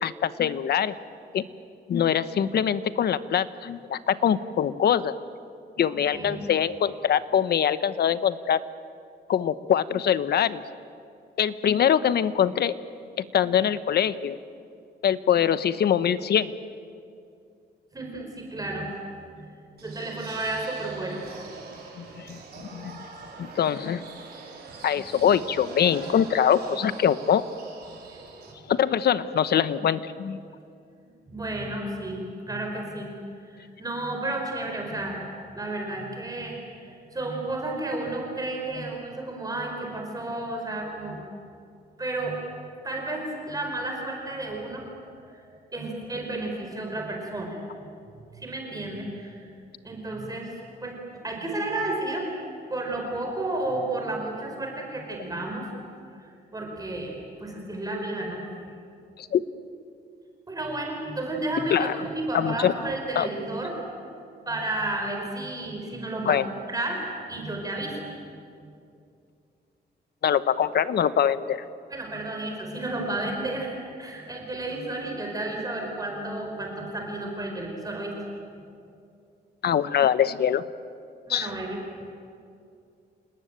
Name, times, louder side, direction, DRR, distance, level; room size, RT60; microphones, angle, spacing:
voice 1, 0.0-0.9 1.3-1.4 1.9-5.1 5.8-8.6 9.3-10.6 11.4-12.7 13.2-14.4 15.0-16.5 22.0-23.1 23.4-24.0 24.8-27.4 28.7-30.4 59.2-59.4 61.7-62.0 62.3-62.7 63.1-63.3 66.3-66.4 70.2-71.6 79.6-80.7 81.3-81.5, left 9 dB, 65° left, 14 dB, 1.0 m, -23 dB
voice 2, 17.9-18.9 19.4-19.5 19.8-21.2 31.3-33.1 33.5-35.2 35.5-41.2 42.0-42.4 42.8-44.8 45.2-47.6 48.4-49.4 49.8-50.6 50.8-52.3 52.7-55.7 56.1-58.4 60.5-64.1 64.4-66.4 66.7-67.0 67.3-68.0 71.9-78.1 81.3-81.8, right 2 dB, 20° right, 1 dB, 4.8 m, -32 dB
sound 1, 19.8-28.5, right 4 dB, 60° right, 5.3 m, -43 dB
28.5 x 19.5 x 9.1 m, 2.5 s
cardioid pair, 120°, 18 cm